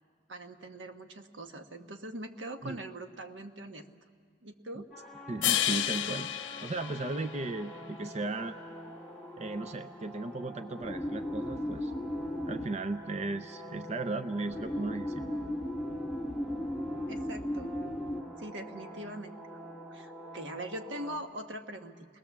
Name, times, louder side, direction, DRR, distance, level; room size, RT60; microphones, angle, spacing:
voice 1, 0.3-3.8 4.4-4.9 17.1-17.7 18.4-19.4 19.9-22.1, right 1 dB, 75° right, 6 dB, 1.3 m, -42 dB
sound 1, 4.9-21.2, left 1 dB, 5° right, 1.9 m, -39 dB
voice 2, 5.3-6.3 6.6-8.6 9.4-11.9 12.5-15.2, right 2 dB, 35° right, 9 dB, 0.6 m, -36 dB
sound 2, 5.4-7.8, left 11 dB, 75° left, 0.7 m, -31 dB
29.5 x 20.0 x 7.2 m, 2.1 s
head